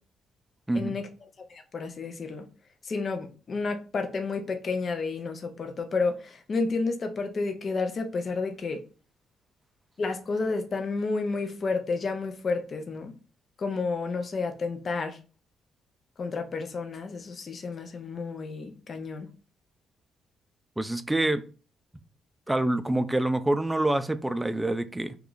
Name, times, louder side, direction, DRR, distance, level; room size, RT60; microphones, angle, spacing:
voice 1, 0.7-1.0 20.8-21.4 22.5-25.2, right 1 dB, 10° right, 11 dB, 0.3 m, -26 dB
voice 2, 1.5-2.4 2.8-8.8 10.0-13.1 13.6-15.2 16.2-19.3, left 4 dB, 45° left, 6 dB, 0.6 m, -31 dB
3.0 x 2.3 x 3.8 m, 0.36 s
cardioid pair, 90°, 0 cm